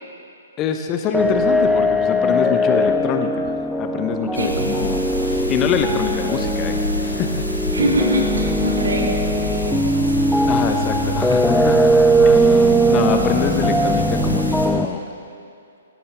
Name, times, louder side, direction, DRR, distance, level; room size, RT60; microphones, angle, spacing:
voice 1, 0.6-3.5 3.8-7.4 10.5-11.9 12.2-15.1, left 7 dB, 20° left, 6 dB, 0.9 m, -25 dB
sound 1, 1.1-14.9, right 1 dB, ahead, 0.3 m, -19 dB
sound 2, 4.3-14.7, left 1 dB, 80° left, 2.7 m, -27 dB
voice 2, 7.7-10.4 10.7-11.8, equal, 65° right, -2 dB, 3.1 m, -25 dB
18.5 x 17.0 x 3.4 m, 2.4 s
figure-of-eight pair, 120°, 0 cm